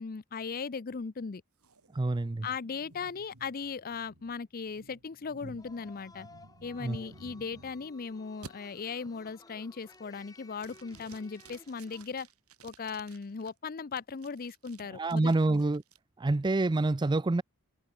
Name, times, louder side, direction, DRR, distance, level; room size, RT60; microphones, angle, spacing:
voice 1, 0.0-1.4 2.4-6.3 6.6-12.3 12.6-15.6, left 5 dB, 40° left, 0.5 m, -38 dB
sound 1, 1.6-7.9 8.4-8.5 9.0-9.4 9.8-10.2 10.6-13.5 14.0-16.0, right 3 dB, 85° right, 3.8 m, -54 dB
voice 2, 1.9-2.5 6.8-7.0 14.9-15.8 16.2-17.4, right 2 dB, 20° right, 0.4 m, -27 dB
sound 2, 5.6-12.0, left 2 dB, 15° left, 2.3 m, -57 dB
head